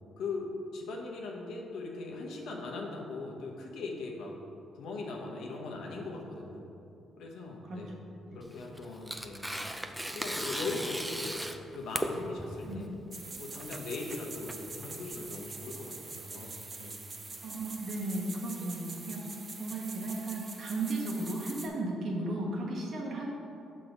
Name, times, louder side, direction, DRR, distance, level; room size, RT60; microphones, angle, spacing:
voice 1, 0.2-4.3 4.7-6.6 7.2-8.0 8.3-9.7 10.0-11.4 11.7-12.9 13.4-17.0, left 3 dB, 80° left, -1 dB, 1.0 m, -40 dB
Tearing, 8.4-15.2, equal, 5° right, 0.4 m, -38 dB
sound 1, 13.1-21.7, right 3 dB, 35° right, 0.7 m, -44 dB
voice 2, 17.4-19.2 19.6-23.3, right 2 dB, 60° right, -2 dB, 1.3 m, -35 dB
6.1 x 3.8 x 5.1 m, 2.9 s
cardioid pair, 90°, 0 cm